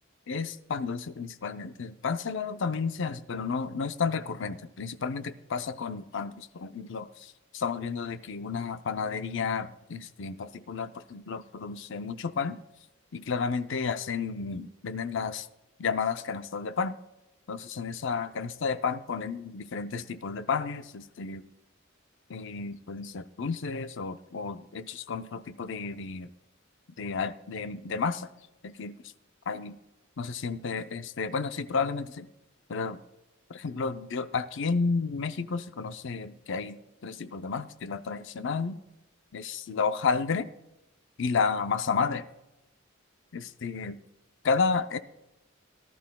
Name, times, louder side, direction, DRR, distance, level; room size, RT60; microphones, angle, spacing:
voice 1, 0.3-12.6 13.1-15.5 15.8-17.0 17.5-21.4 22.3-26.3 27.0-28.3 28.6-29.0 29.5-29.8 30.2-32.3 32.7-33.0 33.5-38.8 39.3-40.5 41.2-42.3 43.3-44.0 44.4-45.0, left 5 dB, 65° left, 11 dB, 0.6 m, -32 dB
18.0 x 12.0 x 2.3 m, 0.94 s
head